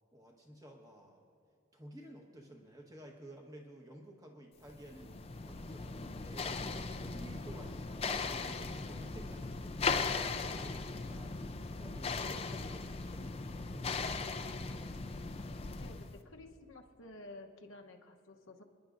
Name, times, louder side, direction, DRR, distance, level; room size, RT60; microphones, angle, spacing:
voice 1, 0.1-1.2 1.7-14.3, right 1 dB, 15° right, 1 dB, 1.2 m, -53 dB
sound 1, 4.7-16.2, left 4 dB, 30° left, 0.5 m, -38 dB
voice 2, 15.8-18.6, left 2 dB, 80° left, 3 dB, 1.0 m, -52 dB
27.5 x 10.5 x 2.6 m, 2.3 s
head